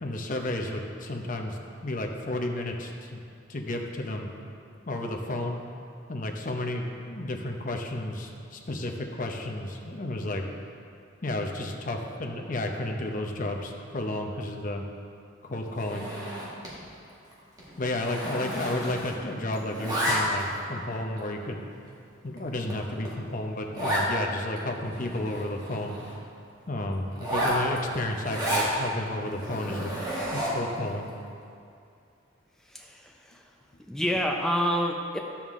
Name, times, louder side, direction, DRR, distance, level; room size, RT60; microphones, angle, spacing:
voice 1, 0.0-3.2 3.5-4.3 4.9-5.6 6.1-10.5 11.2-14.8 15.4-16.1 17.8-21.6 22.2-26.0 26.7-29.9 30.3-31.1, left 1 dB, 40° left, 3 dB, 0.7 m, -32 dB
Zipper (clothing), 15.8-16.8 17.1-17.3 17.6-19.3 19.5-20.6 21.2-21.3 21.9-22.0 22.4-22.5 22.7-22.8 23.0-23.2 23.7-24.1 24.6-24.7 24.9-26.2 27.1-28.7 29.3-30.7, right 1 dB, 20° right, 1.5 m, -31 dB
voice 2, 32.6-33.5 33.8-35.2, equal, ahead, 1 dB, 0.5 m, -28 dB
10.5 x 7.2 x 3.6 m, 2.5 s
head